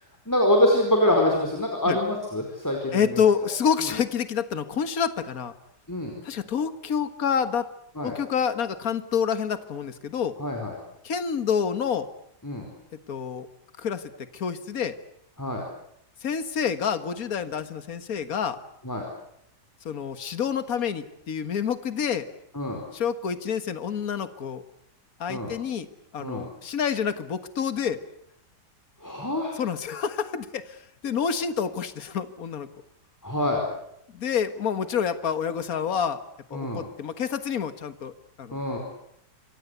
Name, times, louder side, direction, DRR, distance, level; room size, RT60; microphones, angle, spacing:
voice 1, 0.3-3.2 3.8-3.9 5.9-6.2 8.0-8.2 10.4-10.8 12.4-12.7 15.4-15.6 18.8-19.0 22.5-22.8 25.3-25.5 26.2-26.4 29.0-29.6 33.2-33.7 36.5-36.8 38.5-38.8, left 1 dB, 10° left, 1 dB, 4.7 m, -25 dB
voice 2, 2.9-5.5 6.2-7.7 8.0-10.4 11.0-12.1 13.1-13.5 13.8-14.0 14.3-15.0 16.2-18.6 19.9-22.3 22.9-24.6 25.2-25.9 26.1-28.0 29.6-32.7 34.1-36.2 36.5-38.1 38.4-38.6, left 7 dB, 60° left, 11 dB, 2.0 m, -28 dB
28.0 x 24.5 x 8.2 m, 0.74 s
omnidirectional pair, 1.7 m